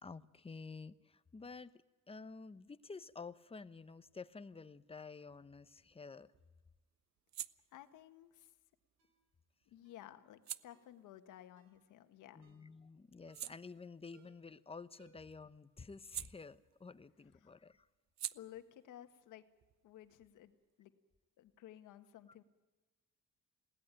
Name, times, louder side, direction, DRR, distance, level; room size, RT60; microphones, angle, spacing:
voice 1, 0.0-1.8 2.1-6.3 12.3-17.9, left 4 dB, 20° left, 13 dB, 0.9 m, -51 dB
sound 1, 5.6-12.4 12.8-17.1 17.3-20.7, right 12 dB, 65° right, 0.7 m, -52 dB
voice 2, 7.7-8.5 9.7-12.5 17.4-17.5 18.3-19.4 19.8-20.9 21.4-22.4, left 12 dB, 90° left, 9 dB, 1.6 m, -55 dB
Ringtone, 9.0-9.2 9.8-10.1 10.7-11.0 11.6-11.8 12.4-12.7 13.3-13.6 14.1-14.5 15.0-15.4 15.7-15.8, right 8 dB, 80° right, 4.5 m, -69 dB
21.0 x 17.0 x 8.9 m, 1.2 s
cardioid pair, 90°, 30 cm